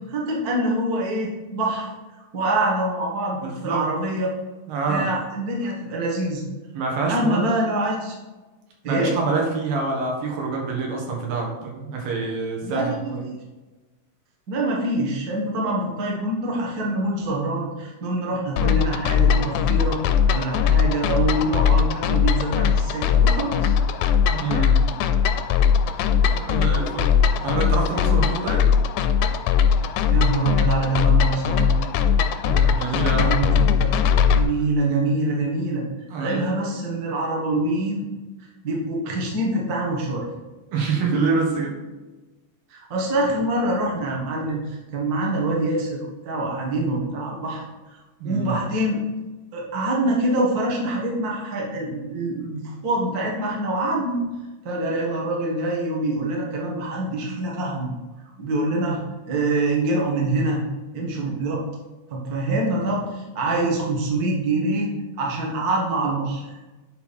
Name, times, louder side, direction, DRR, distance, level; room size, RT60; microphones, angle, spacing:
voice 1, 0.1-1.9 2.3-4.3 4.9-6.4 7.1-8.2 8.8-9.1 12.6-13.4 14.5-20.0 20.3-23.7 25.9-26.1 30.1-32.4 32.8-33.5 33.8-33.9 34.3-35.8 36.2-38.1 38.6-40.3 42.7-48.0 48.2-49.0 49.5-54.3 54.6-57.9 58.4-60.6 60.9-61.6 62.1-66.5, right 2 dB, 40° right, -2 dB, 1.4 m, -25 dB
voice 2, 3.4-3.9 4.7-5.1 6.7-7.5 8.9-13.3 24.3-24.8 26.0-27.1 27.4-28.7 32.4-33.3 36.1-36.4 40.7-41.8 48.2-48.6, right 4 dB, 85° right, -1 dB, 3.3 m, -26 dB
sound 1, 18.6-34.4, left 7 dB, 80° left, 1.9 m, -20 dB
10.5 x 4.5 x 4.3 m, 1.2 s
omnidirectional pair, 4.0 m